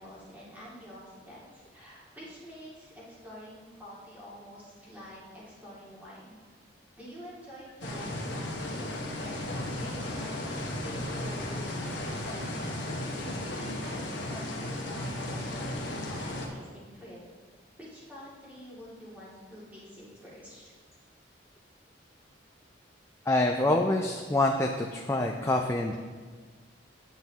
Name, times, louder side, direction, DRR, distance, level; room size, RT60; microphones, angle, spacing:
voice 1, 0.0-6.4 7.0-17.2 17.8-20.7, equal, 10° right, -8 dB, 2.2 m, -47 dB
sound 1, 7.8-16.5, left 1 dB, 65° left, 1.2 m, -35 dB
voice 2, 23.3-26.0, left 2 dB, 15° left, 2 dB, 0.3 m, -26 dB
9.0 x 8.0 x 2.8 m, 1.5 s
head